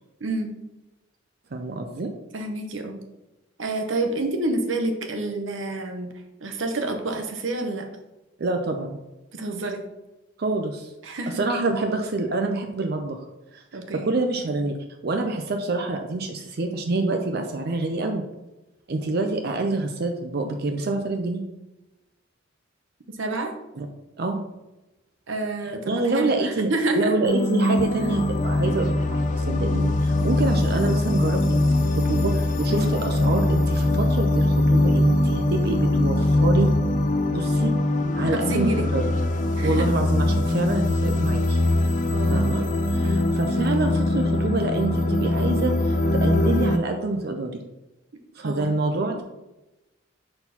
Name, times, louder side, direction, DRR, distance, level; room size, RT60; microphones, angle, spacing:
voice 1, 0.2-0.5 2.3-3.0 3.6-6.1 6.4-7.9 9.3-9.8 11.0-11.4 13.7-14.1 23.2-23.5 25.3-27.1 32.7-32.9 38.2-38.9 39.6-39.9 42.1-42.5 43.0-43.3 48.4-48.8, right 2 dB, 75° right, 5 dB, 0.9 m, -28 dB
voice 2, 1.5-2.1 8.4-9.0 10.4-13.2 13.5-13.6 13.9-14.8 15.0-18.2 18.9-21.4 23.8-23.9 24.2-24.4 25.9-36.7 37.3-37.7 38.2-39.1 39.6-41.6 42.3-47.6 48.4-49.2, right 2 dB, 50° right, 4 dB, 0.5 m, -26 dB
sound 1, 27.2-46.8, left 1 dB, 40° left, 0.4 m, -22 dB
4.4 x 4.1 x 5.7 m, 0.99 s
head